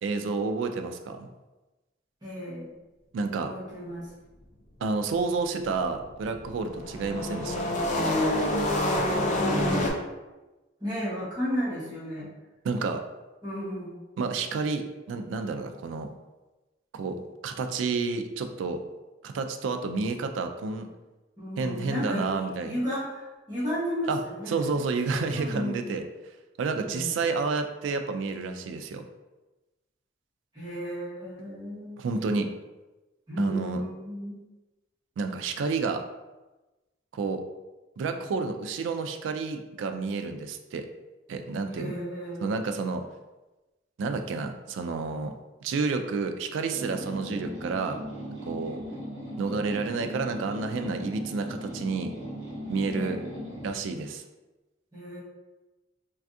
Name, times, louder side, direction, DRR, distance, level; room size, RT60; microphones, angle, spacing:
voice 1, 0.0-1.3 3.1-3.5 4.8-7.8 12.6-13.0 14.2-16.1 16.9-18.8 19.2-20.9 21.6-22.8 24.1-24.2 24.5-26.0 26.6-29.0 32.0-32.5 33.4-33.8 35.2-36.0 37.1-37.4 38.0-40.9 41.3-41.9 42.4-43.0 44.0-45.3 45.6-48.0 48.5-48.8 49.4-52.1 52.7-53.2 53.6-54.2, right 4 dB, 85° right, 7 dB, 0.3 m, -30 dB
voice 2, 2.2-2.7 3.3-4.1 9.4-10.0 10.8-12.3 13.4-14.0 21.4-24.7 25.3-25.8 26.9-27.1 30.5-32.0 33.3-34.4 41.7-42.7 52.9-53.2 54.9-55.2, equal, 20° right, -10 dB, 1.1 m, -33 dB
sound 1, 5.8-9.9, left 1 dB, 40° left, 0.4 m, -27 dB
sound 2, 46.7-53.8, equal, 65° right, 0.9 m, -38 dB
3.3 x 2.3 x 2.6 m, 1.1 s
head